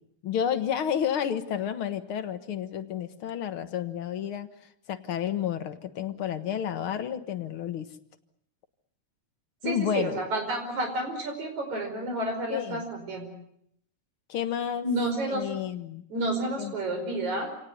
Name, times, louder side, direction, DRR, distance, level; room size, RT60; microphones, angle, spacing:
voice 1, 0.2-4.5 4.9-7.9 9.6-10.2 12.5-12.8 14.3-14.9 15.3-16.0 16.6-16.7, left 9 dB, 55° left, 9 dB, 1.8 m, -30 dB
voice 2, 9.6-13.3 14.8-15.5 16.1-17.5, right 1 dB, 70° right, 5 dB, 6.5 m, -30 dB
27.0 x 18.0 x 9.4 m, 0.73 s
omnidirectional pair, 3.4 m